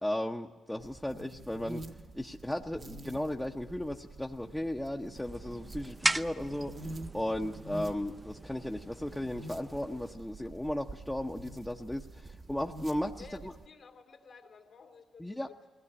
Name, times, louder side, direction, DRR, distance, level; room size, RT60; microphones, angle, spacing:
voice 1, 0.0-1.8 2.1-6.7 7.1-13.2 15.2-15.5, left 1 dB, 10° left, 1 dB, 0.9 m, -35 dB
sound 1, 0.8-13.7, right 2 dB, 50° right, 1.2 m, -47 dB
sound 2, 5.1-10.1, right 2 dB, 20° right, 0.6 m, -38 dB
voice 2, 13.2-15.7, left 4 dB, 75° left, 0 dB, 2.7 m, -53 dB
20.5 x 16.5 x 10.0 m, 1.3 s
cardioid pair, 60°, 0 cm